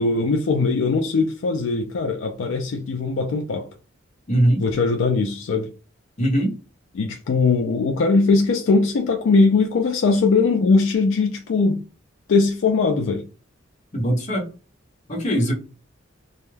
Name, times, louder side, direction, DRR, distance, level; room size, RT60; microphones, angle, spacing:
voice 1, 0.0-3.7 4.6-5.7 6.9-11.8 12.3-13.2, left 4 dB, 70° left, 0.4 m, -20 dB
voice 2, 4.3-4.6 6.2-6.5 13.9-14.5 15.1-15.5, right 1 dB, 35° left, 0.9 m, -20 dB
2.3 x 2.1 x 3.1 m
head